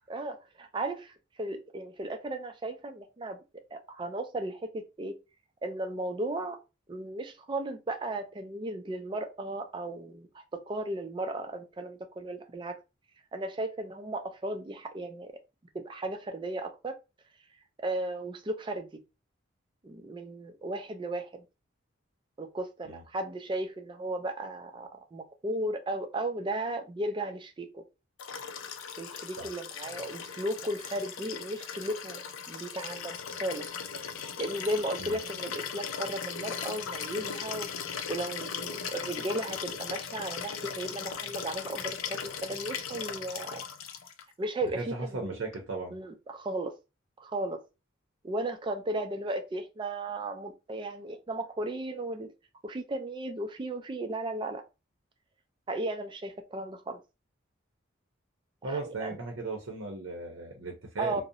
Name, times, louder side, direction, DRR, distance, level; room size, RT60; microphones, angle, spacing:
voice 1, 0.1-5.1 5.6-6.6 6.9-12.8 13.3-15.3 15.7-17.0 17.8-18.9 19.8-21.4 22.4-27.8 29.0-32.2 32.5-33.6 34.4-37.7 38.1-43.6 44.4-45.4 45.9-46.7 47.2-47.6 48.2-52.3 52.6-54.6 55.7-57.0 58.7-59.2 61.0-61.2, right 1 dB, 25° right, 0.3 m, -35 dB
Liquid, 28.2-44.2 45.5-45.6, left 7 dB, 85° left, 0.4 m, -38 dB
voice 2, 44.7-46.0 58.6-61.2, right 3 dB, 70° right, 0.6 m, -36 dB
2.5 x 2.0 x 2.6 m
head